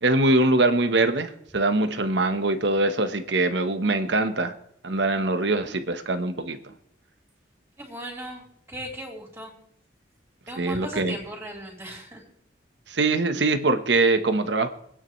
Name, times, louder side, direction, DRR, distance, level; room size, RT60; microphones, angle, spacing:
voice 1, 0.0-4.5 4.8-6.6 10.6-11.2 12.9-14.7, right 2 dB, 70° right, 9 dB, 1.2 m, -23 dB
voice 2, 7.8-9.5 10.5-12.2, right 1 dB, 15° right, -1 dB, 3.8 m, -37 dB
27.0 x 9.7 x 3.2 m, 0.69 s
head